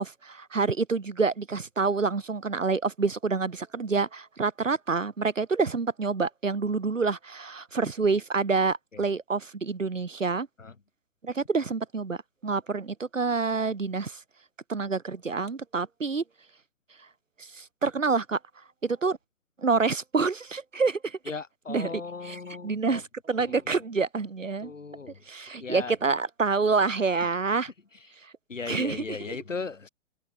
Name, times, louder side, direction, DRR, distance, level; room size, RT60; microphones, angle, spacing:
voice 1, 0.0-10.5 11.2-12.2 12.4-14.2 14.7-16.2 17.4-18.4 18.8-19.2 19.6-21.2 21.7-24.7 25.3-27.7 28.2-28.3 28.7-29.4, right 4 dB, 75° right, 2.2 m, -27 dB
voice 2, 21.3-23.0 23.4-23.6 24.6-25.2 25.6-25.9 27.9-28.1 28.5-29.9, left 4 dB, 75° left, 4.0 m, -37 dB
open air
figure-of-eight pair, 125°, 39 cm